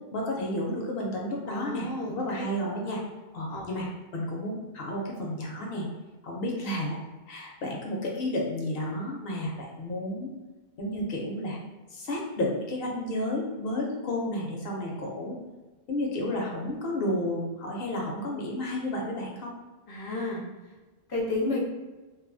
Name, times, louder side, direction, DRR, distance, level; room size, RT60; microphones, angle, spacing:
voice 1, 0.1-3.0 3.3-3.9 4.1-5.9 6.2-7.0 7.3-10.3 10.8-11.6 11.9-15.4 15.9-19.5, left 1 dB, 70° left, -2 dB, 0.8 m, -31 dB
voice 2, 1.5-2.4 3.5-3.9 19.9-20.4 21.1-21.6, left 2 dB, 30° left, -3 dB, 0.4 m, -32 dB
2.4 x 2.3 x 2.5 m, 1.2 s
omnidirectional pair, 1.1 m